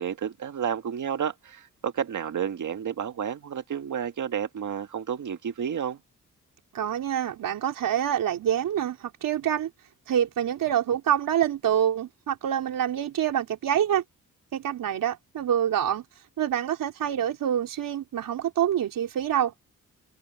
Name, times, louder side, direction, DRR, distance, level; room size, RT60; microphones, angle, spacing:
voice 1, 0.0-6.0, right 8 dB, 65° right, 2.0 m, -31 dB
voice 2, 6.7-9.7 10.1-14.0 14.5-16.0 16.4-19.5, right 10 dB, 80° right, 3.9 m, -26 dB
cardioid pair, 60°, 33 cm